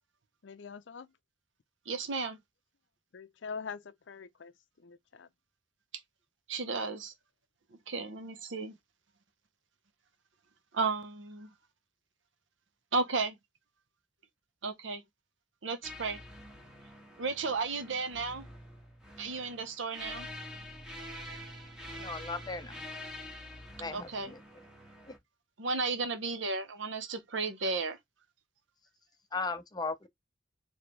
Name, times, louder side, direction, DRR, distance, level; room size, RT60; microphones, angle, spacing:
voice 1, 0.4-1.1 3.1-5.3, left 5 dB, 70° left, 0.5 m, -44 dB
voice 2, 1.9-2.4 6.5-7.1 7.9-8.8 10.7-11.5 12.9-13.4 14.6-15.0 15.6-16.2 17.2-18.5 19.2-20.3 23.9-24.3 25.6-28.0, right 4 dB, 75° right, 0.9 m, -33 dB
sound 1, 15.8-25.2, left 1 dB, 5° right, 1.4 m, -46 dB
voice 3, 21.9-22.8 23.8-24.4 25.1-25.2 29.3-30.1, left 4 dB, 20° left, 0.6 m, -37 dB
4.2 x 3.2 x 3.2 m
head